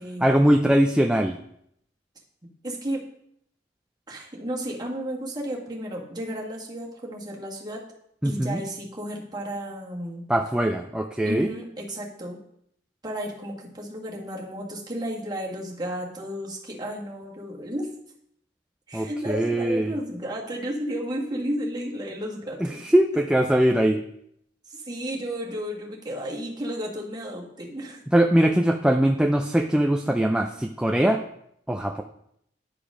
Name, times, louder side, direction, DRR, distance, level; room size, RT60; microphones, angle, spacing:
voice 1, 0.2-1.4 8.2-8.6 10.3-11.5 18.9-19.9 22.6-24.0 28.1-31.2 31.7-32.0, right 1 dB, 5° right, 4 dB, 0.4 m, -21 dB
voice 2, 2.6-3.0 4.1-7.8 8.2-10.3 11.2-12.4 13.0-17.9 18.9-22.8 23.1-23.2 24.6-28.0, equal, 25° right, -3 dB, 1.8 m, -33 dB
10.5 x 5.1 x 5.0 m, 0.72 s
head